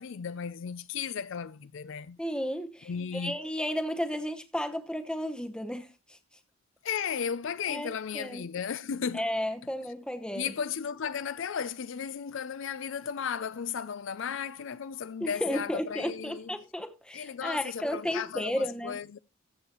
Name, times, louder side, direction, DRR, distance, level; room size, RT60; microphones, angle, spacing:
voice 1, 0.0-2.2 2.9-3.4 6.8-9.3 10.3-16.5 17.1-19.2, left 7 dB, 60° left, 0.4 m, -35 dB
voice 2, 2.2-6.2 7.7-8.5 9.1-10.5 15.2-19.0, equal, 5° left, 0.8 m, -33 dB
14.5 x 7.3 x 3.0 m
head